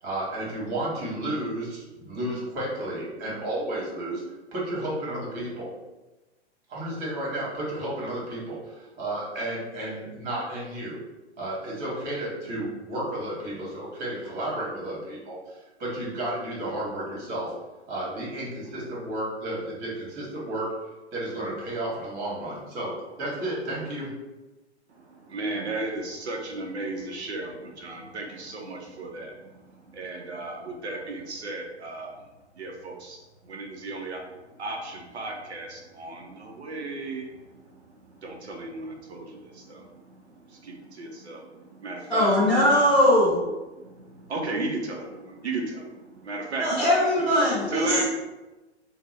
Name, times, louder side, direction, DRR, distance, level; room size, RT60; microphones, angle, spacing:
voice 1, 0.0-4.2 4.5-5.7 6.7-11.0 11.4-17.5 17.9-20.7 21.1-24.1, right 1 dB, 25° right, 1.3 m, -32 dB
voice 2, 24.9-32.1 32.6-34.2 34.6-37.6 37.9-42.3 43.8-46.8 47.7-48.0, right 2 dB, 70° right, 0.7 m, -35 dB
voice 3, 42.1-43.4 46.6-48.0, left 1 dB, 5° left, 0.4 m, -20 dB
2.9 x 2.2 x 4.0 m
figure-of-eight pair, 110°, 35 cm